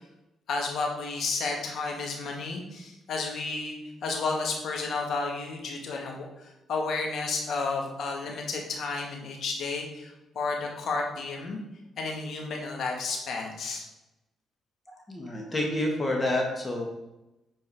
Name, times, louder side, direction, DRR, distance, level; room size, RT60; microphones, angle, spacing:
voice 1, 0.5-11.6 12.0-13.8, left 3 dB, 65° left, 1 dB, 2.3 m, -32 dB
voice 2, 14.9-16.8, left 1 dB, 20° left, 0 dB, 1.8 m, -29 dB
9.6 x 4.7 x 4.7 m, 0.95 s
cardioid pair, 90°, 0 cm